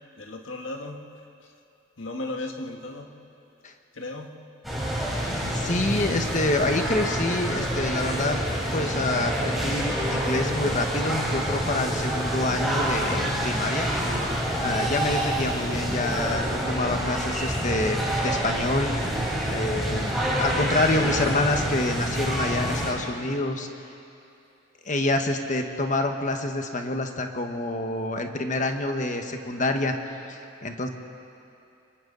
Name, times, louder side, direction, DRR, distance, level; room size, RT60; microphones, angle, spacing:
voice 1, 0.2-1.1 2.0-3.3 3.9-4.4, left 2 dB, 75° left, 3 dB, 1.8 m, -35 dB
sound 1, 4.6-22.9, equal, ahead, 4.3 m, -27 dB
voice 2, 5.5-8.4 8.7-13.9 14.6-18.9 19.5-23.7 24.8-29.9 30.3-30.9, left 2 dB, 40° left, 5 dB, 1.5 m, -27 dB
27.5 x 24.0 x 4.1 m, 2.7 s
head